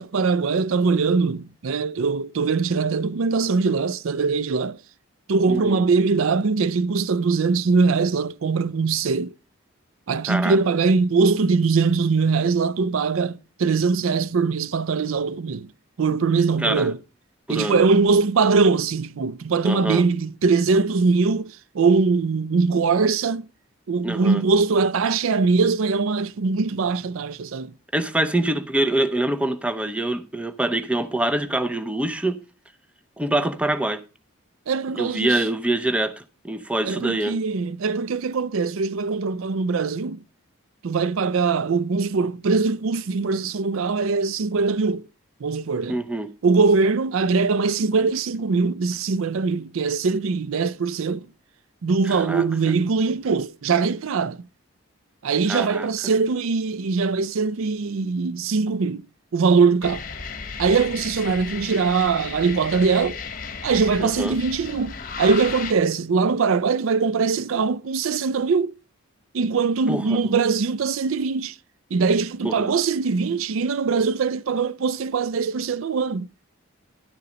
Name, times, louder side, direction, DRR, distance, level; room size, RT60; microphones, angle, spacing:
voice 1, 0.0-4.8 5.3-9.3 10.1-15.7 16.0-17.0 17.5-23.5 23.9-27.7 34.7-35.4 36.8-40.2 40.8-45.1 45.4-46.0 46.4-51.3 51.8-54.4 55.2-59.1 59.3-60.0 60.6-63.2 63.6-68.7 69.3-71.6 71.9-76.3, right 4 dB, 70° right, 0.4 m, -22 dB
voice 2, 5.5-5.8 10.3-10.6 16.6-16.9 17.5-17.8 19.6-20.0 24.0-24.4 27.9-32.4 33.2-34.0 34.9-37.4 45.9-46.3 52.0-52.4 55.5-55.9 64.0-64.4 69.9-70.2 72.4-72.7, right 1 dB, 5° right, 0.6 m, -25 dB
sound 1, 59.8-65.7, left 5 dB, 40° left, 1.2 m, -34 dB
11.5 x 6.8 x 5.0 m
head